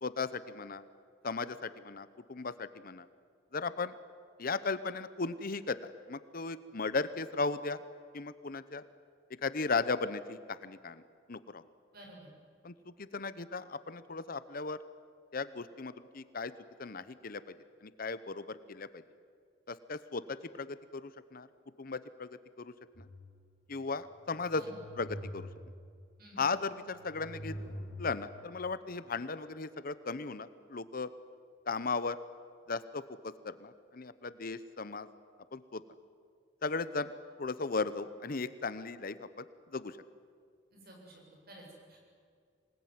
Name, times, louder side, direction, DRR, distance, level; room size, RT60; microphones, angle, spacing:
voice 1, 0.0-0.8 1.2-3.1 3.5-3.9 4.4-7.8 8.1-8.8 9.4-11.0 11.3-11.6 12.6-14.8 15.3-16.5 16.8-17.4 17.8-18.9 19.7-21.5 21.8-23.0 23.7-24.6 25.0-25.5 26.4-27.5 28.0-31.1 31.7-32.2 32.7-35.1 35.5-35.8 36.6-37.1 37.4-39.5 39.7-40.0, left 4 dB, 50° left, 14 dB, 0.8 m, -36 dB
voice 2, 11.9-12.3 24.5-24.8 26.2-26.5 40.7-42.1, right 1 dB, 50° right, 0 dB, 7.9 m, -52 dB
sound 1, 22.9-23.8 24.3-25.9 26.5-28.4, equal, 85° left, 3.5 m, -46 dB
26.0 x 20.0 x 9.5 m, 2.1 s
head